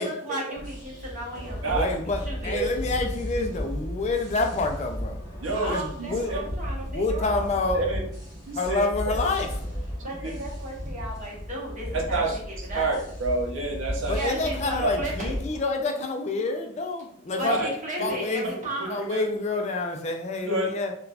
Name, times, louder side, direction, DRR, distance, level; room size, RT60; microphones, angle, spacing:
voice 1, 0.0-2.0 2.2-2.6 5.5-7.5 10.0-12.2 12.5-13.0 14.1-15.4 17.4-19.1, right 1 dB, 40° right, -4 dB, 1.0 m, -35 dB
sound 1, 0.5-15.6, equal, 20° right, 1.1 m, -34 dB
voice 2, 1.7-5.2 5.7-6.3 6.9-7.8 8.5-9.6 14.1-17.6 18.0-20.9, left 3 dB, 35° left, 4 dB, 0.3 m, -28 dB
voice 3, 5.4-6.4 7.7-8.0 8.5-8.8 10.0-10.3 11.9-14.2 14.8-14.9 17.4-17.7 18.0-18.1 18.8-19.3 20.4-20.7, right 3 dB, 75° right, 0 dB, 0.6 m, -28 dB
3.2 x 2.2 x 2.4 m, 0.65 s
head